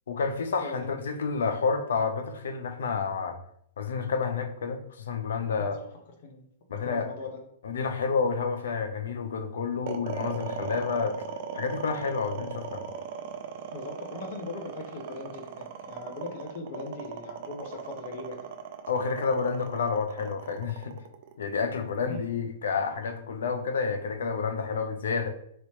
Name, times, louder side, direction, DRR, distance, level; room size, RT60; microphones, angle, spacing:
voice 1, 0.1-3.4 3.8-5.8 6.7-7.1 7.6-11.2 11.5-12.8 18.9-20.9 21.4-25.3, left 5 dB, 85° left, 7 dB, 0.5 m, -29 dB
voice 2, 0.6-0.9 5.6-5.8 6.2-6.4 6.8-7.4 13.7-18.4 22.0-22.2, left 2 dB, 45° left, 3 dB, 0.7 m, -39 dB
sound 1, 9.9-22.1, right 6 dB, 40° right, 0.4 m, -38 dB
3.0 x 2.9 x 3.1 m, 0.70 s
hypercardioid pair, 170°, 0 cm